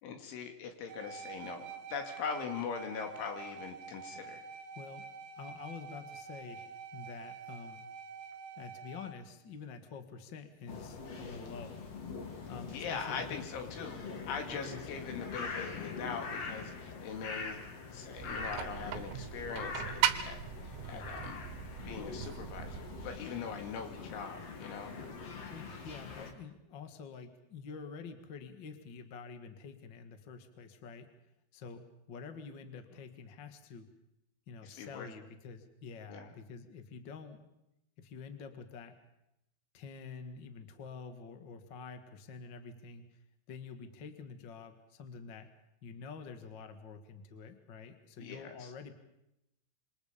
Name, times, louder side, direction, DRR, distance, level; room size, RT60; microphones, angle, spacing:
voice 1, 0.0-4.4 12.7-17.6 17.9-20.4 20.7-21.4 21.9-24.9 26.1-26.3 34.6-35.1 36.1-36.3 48.2-48.7, left 6 dB, 85° left, 5 dB, 4.8 m, -41 dB
sound 1, 0.9-9.1, right 5 dB, 65° right, 3.3 m, -47 dB
voice 2, 4.7-5.1 5.4-7.8 8.6-11.9 12.5-13.5 14.5-14.9 20.9-21.2 25.5-31.1 31.5-33.8 34.5-37.4 38.0-39.0 39.7-43.2 43.5-45.5 45.8-48.9, left 5 dB, 60° left, 7 dB, 1.1 m, -48 dB
sound 2, 10.7-26.3, left 4 dB, 45° left, 2.5 m, -44 dB
sound 3, 18.2-23.2, right 11 dB, 85° right, 3.5 m, -38 dB
27.0 x 25.0 x 5.2 m, 0.84 s
omnidirectional pair, 5.3 m